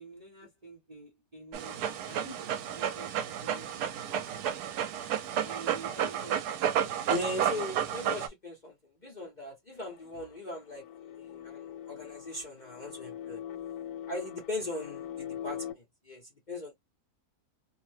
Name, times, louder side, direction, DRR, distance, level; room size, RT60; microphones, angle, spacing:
voice 1, 0.0-3.1 3.4-4.2 5.4-6.5, right 3 dB, 35° right, 0.7 m, -48 dB
Dog, 1.5-8.3, right 9 dB, 85° right, 1.1 m, -32 dB
voice 2, 7.1-8.8 9.0-13.4 14.1-16.7, left 2 dB, 40° left, 0.7 m, -39 dB
sound 1, 9.8-15.7, left 10 dB, 75° left, 1.1 m, -42 dB
2.7 x 2.1 x 3.1 m
omnidirectional pair, 1.7 m